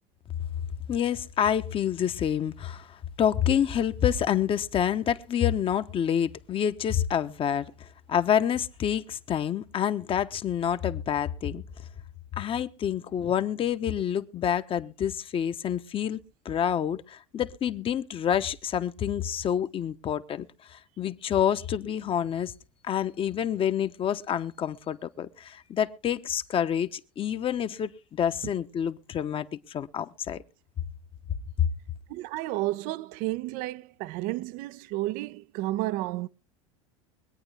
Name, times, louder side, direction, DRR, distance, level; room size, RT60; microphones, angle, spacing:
voice 1, 0.9-11.6 12.4-22.5 22.8-30.4 31.6-31.7, left 9 dB, 35° left, 1.1 m, -28 dB
voice 2, 32.1-36.3, right 17 dB, 60° right, 0.6 m, -31 dB
23.5 x 8.9 x 3.4 m
supercardioid pair, 105°, 16 cm